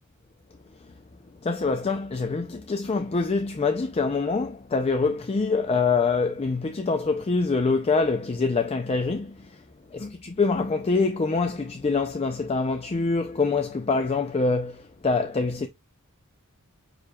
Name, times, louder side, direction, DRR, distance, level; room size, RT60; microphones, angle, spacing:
voice 1, 1.4-9.6 9.9-15.7, left 4 dB, 25° left, 0.4 m, -25 dB
6.7 x 3.1 x 2.3 m
head